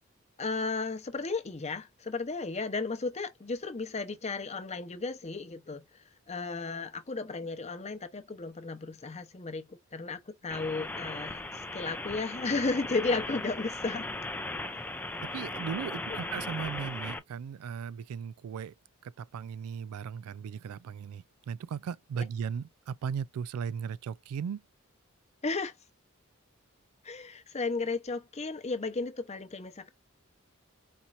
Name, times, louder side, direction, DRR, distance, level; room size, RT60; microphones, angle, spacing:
voice 1, 0.4-11.4 11.7-14.1 22.2-22.3 25.4-25.7 27.0-29.9, left 3 dB, 30° left, 0.7 m, -34 dB
sound 1, 10.5-17.2, left 2 dB, 10° left, 0.3 m, -38 dB
voice 2, 15.2-18.7 19.0-24.6, right 7 dB, 85° right, 0.3 m, -37 dB
4.3 x 2.7 x 2.5 m
head